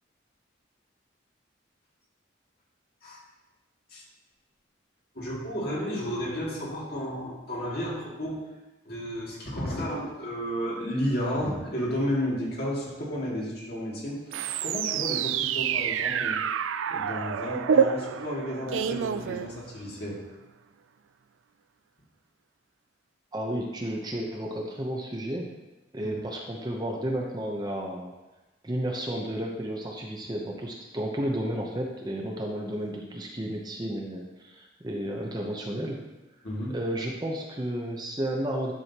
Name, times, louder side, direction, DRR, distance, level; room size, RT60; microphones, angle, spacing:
voice 1, 5.1-8.4 8.8-16.4 16.9-20.2 26.0-26.2 36.4-36.7, equal, 55° left, -5 dB, 2.3 m, -32 dB
sound 1, 14.3-20.0, right 7 dB, 90° right, 0.4 m, -28 dB
voice 2, 23.3-25.5 25.9-28.1 28.6-36.0 36.7-38.7, right 1 dB, 20° right, 0 dB, 0.8 m, -32 dB
11.0 x 6.3 x 2.9 m, 1.1 s
head